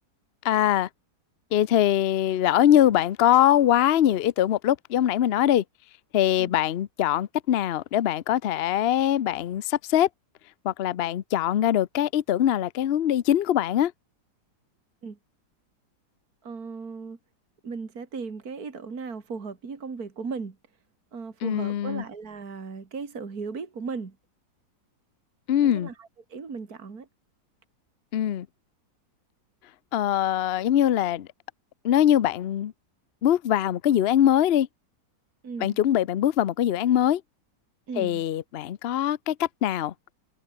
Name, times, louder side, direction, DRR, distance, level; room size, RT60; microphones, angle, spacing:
voice 1, 0.4-0.9 1.5-5.6 6.1-10.1 10.6-13.9 21.4-22.0 25.5-25.9 28.1-28.5 29.9-31.3 31.8-32.7 33.2-34.7 35.6-37.2 38.0-39.9, left 11 dB, 65° left, 0.6 m, -22 dB
voice 2, 16.4-17.2 17.6-20.6 21.1-24.2 25.6-27.1 35.4-35.8 37.9-38.2, right 5 dB, 55° right, 3.0 m, -36 dB
omnidirectional pair, 1.9 m